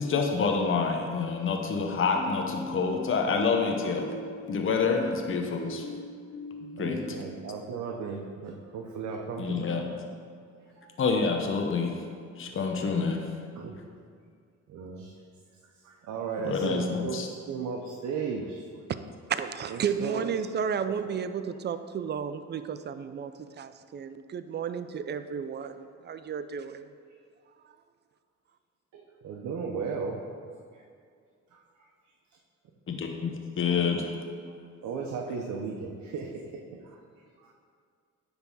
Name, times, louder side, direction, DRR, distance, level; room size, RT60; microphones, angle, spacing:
voice 1, 0.0-4.1 4.5-5.9 6.8-7.0 9.4-9.9 11.0-12.0 12.4-13.2 16.4-17.3 32.9-34.1, left 5 dB, 45° left, 3 dB, 0.9 m, -27 dB
sound 1, 2.1-7.2, left 2 dB, 75° left, 1.2 m, -40 dB
voice 2, 6.6-9.7 10.8-10.9 12.5-12.6 13.6-13.8 14.7-15.1 15.8-18.6 19.7-20.5 21.0-21.1 28.9-30.2 30.7-30.8 31.5-31.6 34.5-34.6 34.8-36.3 36.8-37.0 37.4-37.5, right 5 dB, 70° right, 0 dB, 0.8 m, -35 dB
voice 3, 19.3-23.3 23.6-26.9, right 7 dB, 35° right, 11 dB, 0.4 m, -33 dB
9.5 x 3.5 x 5.5 m, 2.2 s
cardioid pair, 90°, 30 cm